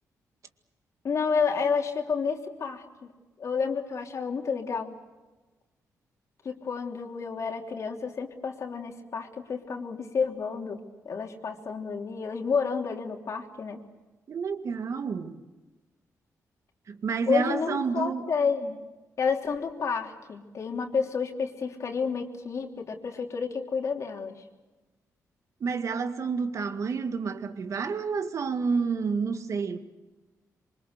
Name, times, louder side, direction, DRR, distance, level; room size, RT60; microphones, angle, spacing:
voice 1, 1.0-2.8 3.4-4.9 6.4-13.8 17.3-18.8 19.2-24.4, left 5 dB, 55° left, 3.3 m, -30 dB
voice 2, 14.3-15.4 16.9-18.2 25.6-29.8, right 5 dB, 55° right, 2.0 m, -29 dB
27.0 x 24.5 x 6.8 m
cardioid pair, 110°, 6 cm